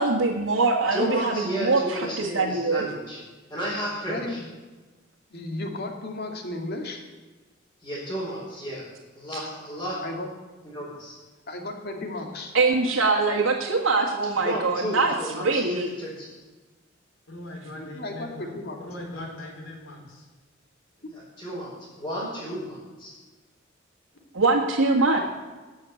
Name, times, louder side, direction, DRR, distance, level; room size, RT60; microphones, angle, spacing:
voice 1, 0.0-2.8 12.5-15.9 24.3-25.2, right 3 dB, 85° right, -1 dB, 1.7 m, -23 dB
voice 2, 0.9-3.2 3.5-4.4 7.8-8.9 9.1-10.0 10.6-11.1 14.3-16.3 21.1-23.1, equal, 15° left, -10 dB, 4.4 m, -32 dB
voice 3, 4.1-4.5 5.3-7.0 10.0-10.3 11.5-12.6 17.8-18.8, left 2 dB, 55° left, 3 dB, 2.2 m, -34 dB
voice 4, 17.3-18.5 18.8-20.3, left 1 dB, 80° left, 1 dB, 4.0 m, -40 dB
19.0 x 6.5 x 8.3 m, 1.3 s
head